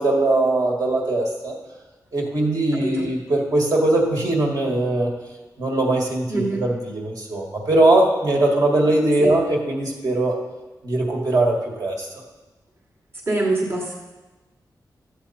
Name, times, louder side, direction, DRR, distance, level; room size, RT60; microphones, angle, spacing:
voice 1, 0.0-1.5 2.1-5.1 5.6-10.3 10.8-11.5 11.8-12.1, right 2 dB, 55° right, -1 dB, 1.9 m, -20 dB
voice 2, 2.7-3.1 6.3-6.6 9.2-9.3 13.3-13.9, right 2 dB, 35° right, -2 dB, 1.5 m, -24 dB
13.0 x 8.3 x 4.3 m, 1.2 s
wide cardioid pair, 140°, 7 cm